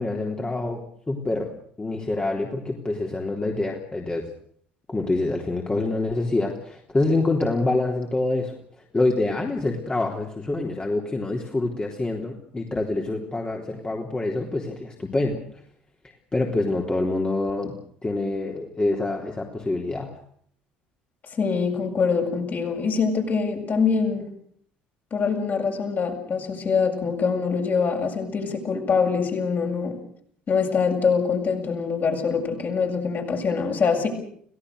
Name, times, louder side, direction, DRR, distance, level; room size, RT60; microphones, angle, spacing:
voice 1, 0.0-1.5 1.8-4.3 4.9-15.4 16.3-17.7 18.0-20.1, left 2 dB, 20° left, 0 dB, 3.6 m, -26 dB
voice 2, 21.4-24.3 25.1-30.0 30.5-34.1, left 5 dB, 40° left, 2 dB, 7.6 m, -24 dB
29.5 x 17.5 x 6.7 m, 0.64 s
figure-of-eight pair, 60°, 5 cm